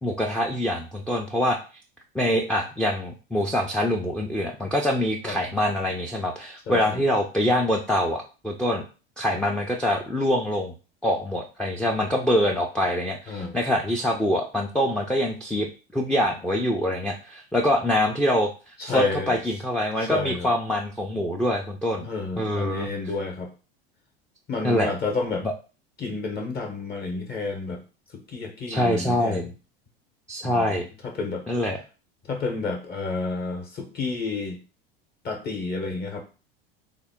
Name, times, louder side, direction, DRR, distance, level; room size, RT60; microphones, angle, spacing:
voice 1, 0.0-1.6 2.1-8.8 9.2-10.7 11.0-15.7 15.9-22.1 22.4-22.9 24.6-24.9 25.4-25.5 28.7-29.4 30.3-30.9 31.5-31.8, left 1 dB, 5° left, 0 dB, 0.4 m, -25 dB
voice 2, 6.7-7.0 13.3-13.6 18.8-19.4 20.0-20.5 22.0-23.5 24.5-25.5 26.0-27.8 28.1-29.5 30.4-31.4 32.3-34.6 35.2-36.2, left 3 dB, 30° left, 3 dB, 0.8 m, -30 dB
3.6 x 2.1 x 3.5 m, 0.34 s
hypercardioid pair, 95°, 30 cm